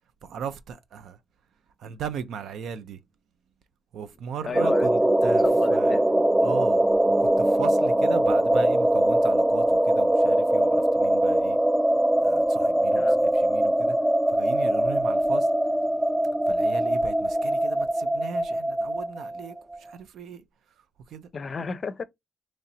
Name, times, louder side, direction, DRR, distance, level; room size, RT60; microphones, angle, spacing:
voice 1, 0.2-1.2 1.8-3.0 3.9-5.4 5.7-6.0 6.4-11.6 12.2-14.0 14.3-15.5 16.5-20.4 21.1-21.3, right 7 dB, 85° right, 0.4 m, -37 dB
voice 2, 4.4-6.1 12.9-13.2 21.3-22.0, left 5 dB, 50° left, 0.5 m, -34 dB
sound 1, 4.5-19.9, right 1 dB, 15° right, 0.4 m, -22 dB
3.1 x 2.8 x 4.0 m
cardioid pair, 70°, 0 cm